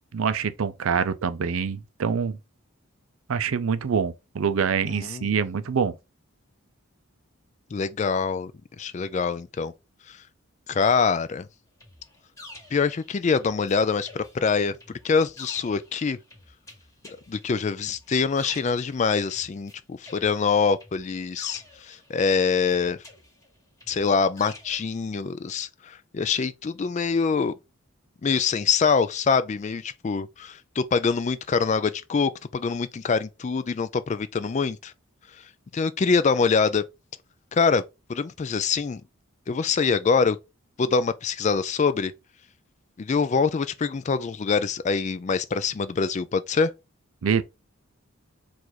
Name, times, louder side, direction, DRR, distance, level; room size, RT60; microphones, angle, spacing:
voice 1, 0.1-2.4 3.3-5.9 47.2-47.4, right 6 dB, 75° right, 0.5 m, -25 dB
voice 2, 4.9-5.3 7.7-8.5 8.8-9.7 10.1-10.2 10.7-11.5 12.7-16.2 17.3-23.0 23.9-27.5 28.2-34.9 35.7-36.8 37.5-37.8 38.1-39.0 39.5-40.4 40.8-42.1 43.0-46.7, left 5 dB, 35° left, 0.3 m, -24 dB
sound 1, 11.8-13.7 14.0-19.7 20.0-22.3 22.7-24.9, left 2 dB, 15° left, 1.8 m, -49 dB
4.7 x 2.5 x 4.0 m
head